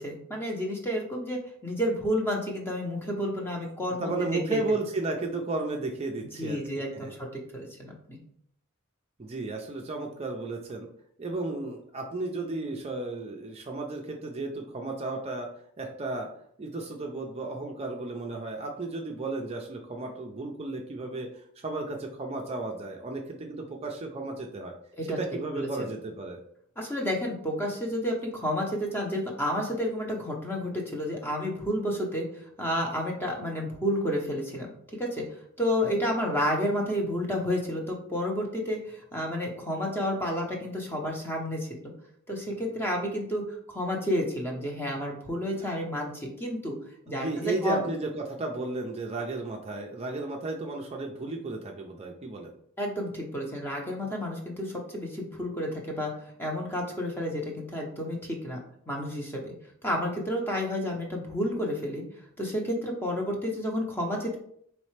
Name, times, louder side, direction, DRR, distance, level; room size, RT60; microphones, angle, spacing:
voice 1, 0.0-4.6 6.4-8.2 25.0-25.2 25.5-25.9 26.8-32.3 32.6-34.7 35.0-35.3 35.6-41.7 42.3-43.4 43.7-46.8 47.1-47.8 52.8-56.1 56.4-58.6 58.9-59.5 59.8-62.0 62.4-64.4, equal, 10° left, 0 dB, 0.7 m, -30 dB
voice 2, 4.0-6.6 6.9-7.2 9.2-10.9 11.2-15.5 15.8-16.3 16.6-24.7 25.2-26.4 45.5-45.6 47.1-52.5, right 2 dB, 30° right, 1 dB, 0.4 m, -34 dB
4.1 x 3.1 x 3.2 m, 0.67 s
head